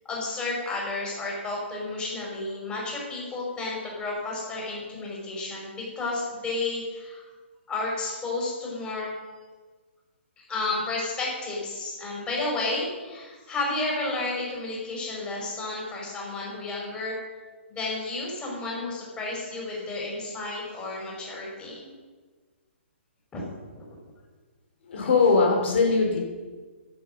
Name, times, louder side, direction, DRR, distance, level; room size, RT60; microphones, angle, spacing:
voice 1, 0.1-7.2 7.7-9.1 10.4-17.2 17.7-21.9 23.3-23.5 23.8-23.9, left 2 dB, 15° left, -3 dB, 5.4 m, -32 dB
voice 2, 24.9-26.2, left 4 dB, 65° left, 0 dB, 3.3 m, -21 dB
11.5 x 10.5 x 6.6 m, 1.4 s
hypercardioid pair, 145°, 7 cm